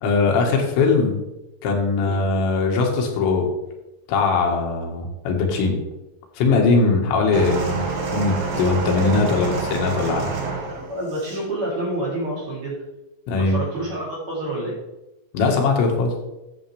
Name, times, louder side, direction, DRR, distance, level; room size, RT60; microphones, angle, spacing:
voice 1, 0.0-1.2 1.6-3.5 4.1-5.8 6.4-7.8 8.1-10.3 13.3-13.6 15.3-16.1, left 4 dB, 90° left, 1 dB, 4.0 m, -20 dB
sound 1, 7.3-11.5 12.3-12.5, right 4 dB, 55° right, 3.2 m, -27 dB
voice 2, 10.9-12.8 13.3-14.8, right 1 dB, 35° right, -6 dB, 3.7 m, -28 dB
11.5 x 7.8 x 3.4 m, 0.97 s
omnidirectional pair, 5.0 m